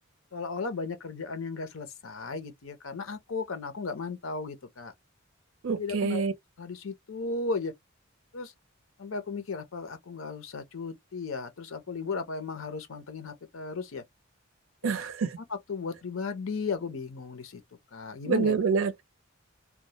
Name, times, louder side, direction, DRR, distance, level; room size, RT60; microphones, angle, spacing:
voice 1, 0.3-4.9 5.7-6.2 6.6-7.7 8.3-8.5 9.0-14.0 14.8-14.9 15.5-17.6 17.9-18.5, left 4 dB, 75° left, 0.7 m, -35 dB
voice 2, 5.6-6.3 14.8-15.4 18.3-19.0, right 5 dB, 70° right, 0.5 m, -27 dB
2.2 x 2.1 x 2.8 m
head